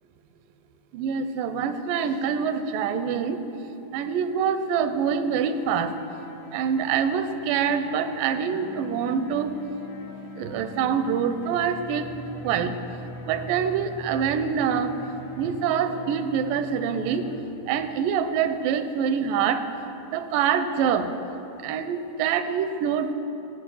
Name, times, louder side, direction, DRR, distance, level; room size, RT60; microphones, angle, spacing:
voice 1, 0.9-3.4 3.9-5.9 6.5-9.5 10.4-12.1 12.4-12.7 13.3-14.9 15.4-17.2 17.7-19.6 20.1-21.1 21.6-23.1, right 7 dB, 85° right, 10 dB, 2.2 m, -25 dB
sound 1, 5.5-17.4, left 1 dB, 65° left, 1.2 m, -42 dB
15.0 x 7.0 x 5.5 m, 2.9 s
omnidirectional pair, 3.8 m